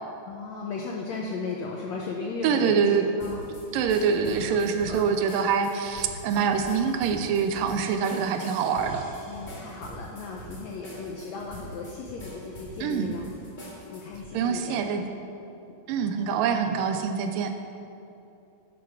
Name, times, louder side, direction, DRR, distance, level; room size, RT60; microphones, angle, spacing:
voice 1, 0.2-3.7 4.3-4.6 4.9-5.0 9.3-13.3 13.9-15.1 15.7-15.8, left 4 dB, 80° left, -1 dB, 1.6 m, -36 dB
voice 2, 2.4-3.0 3.7-9.1 12.8-13.1 14.3-15.0 15.9-17.5, right 6 dB, 80° right, 7 dB, 2.2 m, -25 dB
sound 1, 3.2-14.3, right 1 dB, 25° left, 2.3 m, -43 dB
11.0 x 7.3 x 6.0 m, 2.8 s
omnidirectional pair, 4.1 m